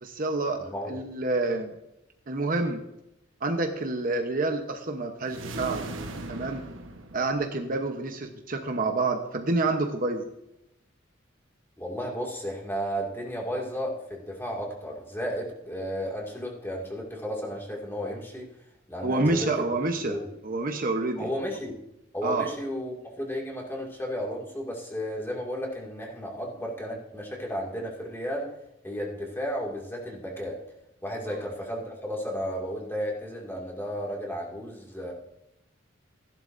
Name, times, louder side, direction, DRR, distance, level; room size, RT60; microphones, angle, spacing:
voice 1, 0.0-1.7 2.3-2.8 3.4-5.8 6.3-6.6 7.1-10.3 19.0-20.2 20.4-21.3 22.2-22.5 31.3-31.4, right 2 dB, 45° right, 4 dB, 1.0 m, -28 dB
voice 2, 0.6-1.0 11.8-18.5 18.9-19.7 20.0-20.3 21.2-21.7 22.1-28.6 28.8-30.6 31.0-35.1, equal, 10° left, -2 dB, 2.3 m, -33 dB
sound 1, 5.2-7.8, right 2 dB, 85° right, 1.2 m, -38 dB
15.5 x 11.0 x 2.6 m, 0.84 s
head